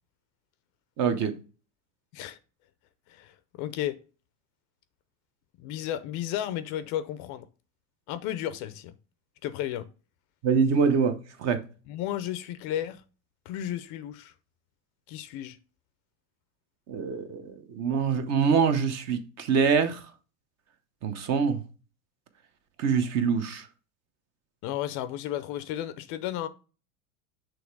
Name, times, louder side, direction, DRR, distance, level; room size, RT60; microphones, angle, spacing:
voice 1, 1.0-1.3 10.4-11.6 16.9-20.0 21.0-21.6 22.8-23.6, right 6 dB, 35° right, 0.8 m, -25 dB
voice 2, 3.1-4.0 5.6-7.5 8.1-8.9 9.4-9.9 11.9-13.0 13.5-14.3 15.1-15.6 24.6-26.5, left 12 dB, 45° left, 0.5 m, -33 dB
6.3 x 3.3 x 4.6 m
supercardioid pair, 145°, 43 cm